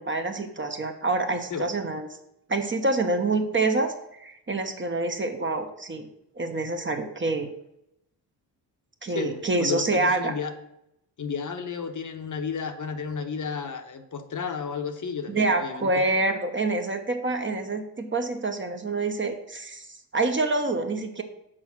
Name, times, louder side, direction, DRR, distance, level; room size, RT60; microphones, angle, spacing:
voice 1, 0.0-2.1 2.5-3.9 4.2-6.1 6.4-7.5 9.0-10.3 15.3-19.9 20.1-21.2, right 2 dB, 25° right, 5 dB, 1.0 m, -26 dB
voice 2, 9.1-10.5 11.2-16.0, left 5 dB, 45° left, 6 dB, 1.0 m, -32 dB
6.3 x 4.7 x 6.1 m, 0.81 s
cardioid pair, 80°, 43 cm